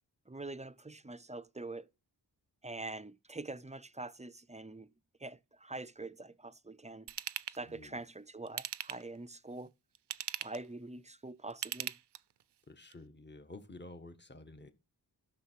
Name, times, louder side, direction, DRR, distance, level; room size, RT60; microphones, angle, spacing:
voice 1, 0.3-1.9 2.6-4.9 5.2-7.1 7.5-9.7 10.4-11.9, right 2 dB, 15° right, 0.6 m, -44 dB
Ratchet pawl / Tools, 7.1-7.6 8.5-9.2 9.9-10.7 11.5-12.4 12.9-13.0, right 11 dB, 80° right, 0.6 m, -39 dB
voice 2, 7.7-8.0 12.7-14.7, left 2 dB, 25° left, 1.6 m, -51 dB
12.5 x 6.7 x 4.6 m
wide cardioid pair, 70°, 41 cm